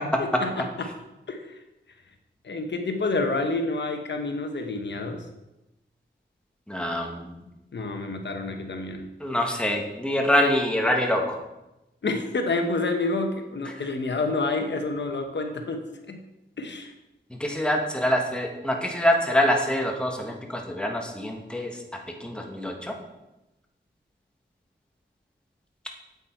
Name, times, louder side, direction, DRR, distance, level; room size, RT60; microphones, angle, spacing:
voice 1, 0.2-0.9 1.3-1.5 2.4-5.2 7.7-9.1 12.0-16.2 16.6-16.9, left 3 dB, 70° left, 5 dB, 0.9 m, -28 dB
voice 2, 6.7-7.3 9.2-11.4 17.4-21.7 22.2-22.7, equal, 5° left, 1 dB, 1.2 m, -25 dB
8.2 x 8.0 x 4.5 m, 0.96 s
wide cardioid pair, 115°, 19 cm